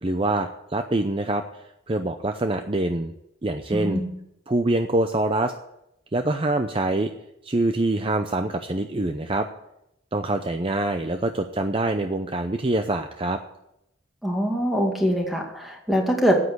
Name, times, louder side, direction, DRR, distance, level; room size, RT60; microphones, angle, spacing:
voice 1, 0.0-3.1 3.4-4.0 4.5-5.5 6.1-7.1 7.4-9.5 10.1-13.4, right 2 dB, 25° right, 7 dB, 0.6 m, -25 dB
voice 2, 3.7-4.1 14.2-16.4, equal, ahead, 0 dB, 2.2 m, -23 dB
9.8 x 8.5 x 9.4 m, 0.85 s
head